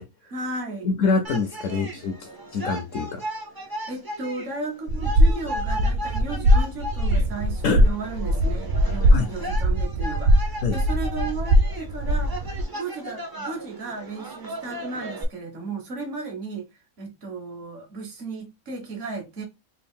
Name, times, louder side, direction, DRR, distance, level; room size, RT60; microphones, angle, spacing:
voice 1, 0.2-0.9 1.6-1.8 3.9-16.7 17.0-19.4, right 3 dB, 60° right, 1.3 m, -35 dB
voice 2, 0.8-3.2 7.6-7.9 9.1-9.3 10.6-10.8, left 4 dB, 70° left, 0.9 m, -25 dB
sound 1, 1.2-15.2, right 1 dB, 25° right, 0.5 m, -36 dB
sound 2, 4.9-12.6, equal, 80° right, 0.5 m, -21 dB
3.5 x 2.5 x 3.5 m
omnidirectional pair, 1.5 m